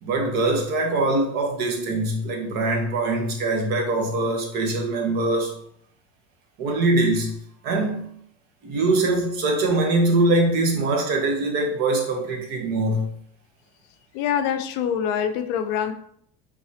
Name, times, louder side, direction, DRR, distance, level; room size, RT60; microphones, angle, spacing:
voice 1, 0.0-5.6 6.6-7.3 7.6-8.1 8.6-13.1, right 2 dB, 50° right, 1.0 m, -23 dB
voice 2, 14.1-15.9, left 8 dB, 60° left, 0.5 m, -25 dB
4.9 x 3.5 x 2.8 m
cardioid pair, 175°, 20 cm